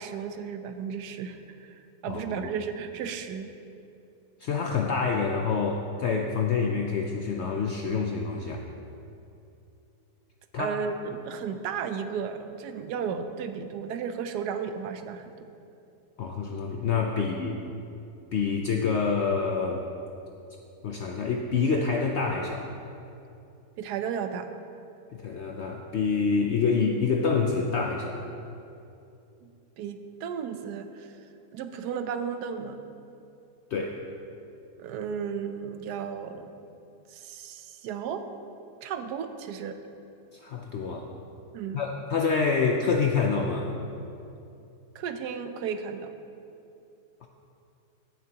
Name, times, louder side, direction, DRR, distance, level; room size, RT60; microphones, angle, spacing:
voice 1, 0.0-1.7 2.0-3.5 10.6-15.5 17.2-17.3 23.8-24.5 29.4-29.5 29.8-31.2 31.5-32.8 34.8-36.5 37.1-38.2 38.8-39.7 41.5-41.8 44.9-46.1, right 7 dB, 85° right, 8 dB, 1.2 m, -34 dB
voice 2, 2.1-2.5 4.4-8.6 10.5-10.8 16.2-17.6 18.3-19.9 20.8-22.7 25.1-28.2 33.7-34.0 40.3-41.1 41.7-43.7 47.2-47.3, left 5 dB, 70° left, 2 dB, 0.6 m, -27 dB
15.0 x 7.3 x 2.9 m, 2.7 s
omnidirectional pair, 1.7 m